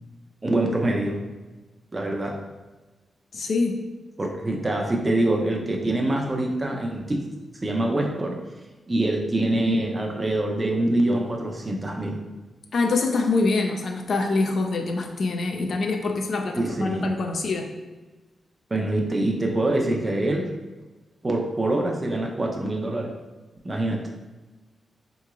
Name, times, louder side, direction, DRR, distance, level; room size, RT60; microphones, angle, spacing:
voice 1, 0.4-1.2 1.9-2.4 4.2-7.3 7.6-8.4 8.9-12.2 16.6-17.1 18.7-20.5 21.2-23.1 23.6-24.1, right 1 dB, 25° right, 0 dB, 0.5 m, -25 dB
voice 2, 3.3-3.8 12.7-17.7, left 3 dB, 60° left, 3 dB, 0.4 m, -24 dB
3.8 x 2.9 x 2.3 m, 1.2 s
cardioid pair, 90°, 0 cm